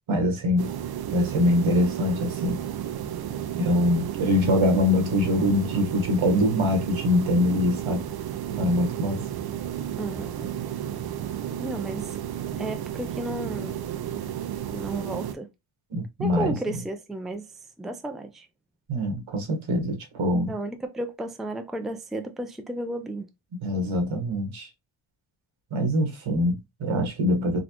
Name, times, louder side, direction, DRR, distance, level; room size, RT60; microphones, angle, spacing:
voice 1, 0.1-0.7 1.1-2.6 3.6-8.0 8.6-9.2 15.9-16.6 18.9-20.5 23.6-24.7 25.7-27.6, left 1 dB, 75° right, 1.5 m, -23 dB
sound 1, 0.6-15.4, right 10 dB, 50° right, 0.5 m, -33 dB
voice 2, 10.0-10.5 11.6-12.2 12.6-13.7 14.7-15.5 16.2-17.5 17.8-18.5 20.4-23.3, right 1 dB, ahead, 0.4 m, -33 dB
4.1 x 2.3 x 2.9 m
cardioid pair, 65°, 47 cm